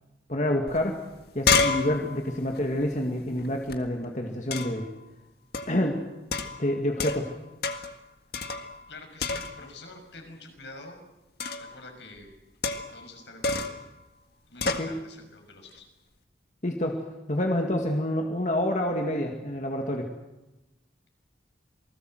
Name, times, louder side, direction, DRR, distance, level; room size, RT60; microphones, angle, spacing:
voice 1, 0.3-1.0 1.3-4.9 5.7-6.0 6.6-7.3 14.6-15.0 16.6-20.1, left 1 dB, 40° left, 2 dB, 2.1 m, -28 dB
sound 1, 0.7-0.8 1.1-3.8 4.5-4.9 5.5-5.8 6.3-7.4 7.6-8.0 8.3-8.9 9.2-9.8 11.4-11.8 12.6-13.1 13.4-13.9 14.6-14.9, left 4 dB, 60° left, 1.8 m, -29 dB
voice 2, 8.9-11.0 11.6-12.3 12.9-13.7 14.4-15.9, left 2 dB, 80° left, 4 dB, 6.3 m, -47 dB
28.0 x 19.5 x 7.8 m, 1.0 s
head